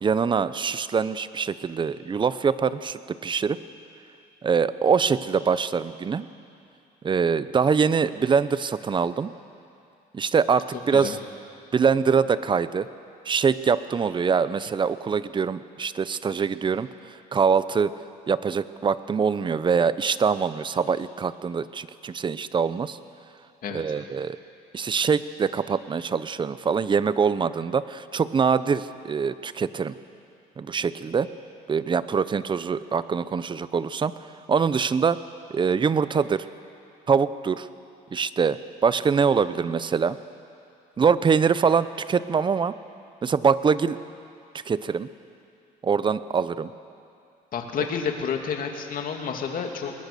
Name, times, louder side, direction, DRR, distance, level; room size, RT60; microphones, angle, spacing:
voice 1, 0.0-3.6 4.4-6.3 7.0-9.3 10.1-11.2 11.7-12.9 13.3-16.9 17.3-17.9 18.3-23.0 23.7-24.4 24.7-29.9 30.6-31.3 31.7-34.1 34.5-35.2 35.5-36.5 37.1-37.7 38.1-40.2 41.0-42.7 43.2-44.0 44.7-45.1 45.8-46.7, right 6 dB, 30° right, 15 dB, 0.7 m, -24 dB
voice 2, 47.5-49.9, left 6 dB, 55° left, 3 dB, 2.5 m, -30 dB
21.0 x 20.0 x 6.8 m, 2.6 s
cardioid pair, 110°, 17 cm